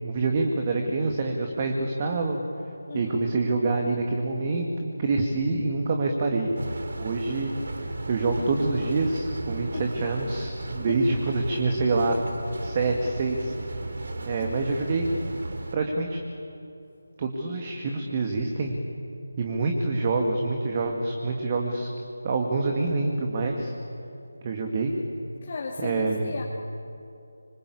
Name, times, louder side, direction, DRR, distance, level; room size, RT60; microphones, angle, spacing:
voice 1, 0.0-2.4 2.9-6.5 7.0-7.5 8.1-12.2 12.6-13.5 14.3-15.1 15.7-16.2 17.2-18.7 19.4-21.9 22.2-23.7 24.4-24.9 25.8-26.4, right 3 dB, 25° right, 3 dB, 2.3 m, -26 dB
sound 1, 6.6-15.8, right 2 dB, 55° right, 3.2 m, -35 dB
voice 2, 25.4-26.4, left 4 dB, 35° left, -1 dB, 2.5 m, -35 dB
26.0 x 26.0 x 8.6 m, 2.8 s
figure-of-eight pair, 160°, 0 cm